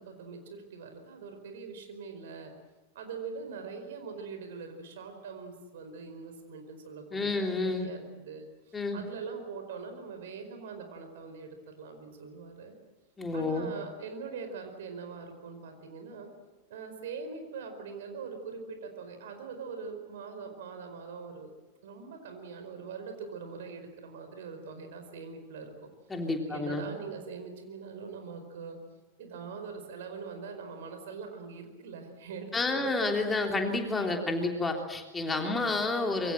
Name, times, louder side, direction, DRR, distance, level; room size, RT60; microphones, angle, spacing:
voice 1, 0.0-2.5 2.9-12.7 13.3-16.3 16.7-21.5 21.8-25.9 26.4-28.8 29.2-33.1 35.3-35.6, right 5 dB, 55° right, 6 dB, 4.8 m, -42 dB
voice 2, 7.1-7.9 8.7-9.0 13.2-13.7 26.1-26.8 32.5-36.3, left 2 dB, 15° left, 3 dB, 3.3 m, -30 dB
26.0 x 23.5 x 7.8 m, 1.2 s
figure-of-eight pair, 90°, 0 cm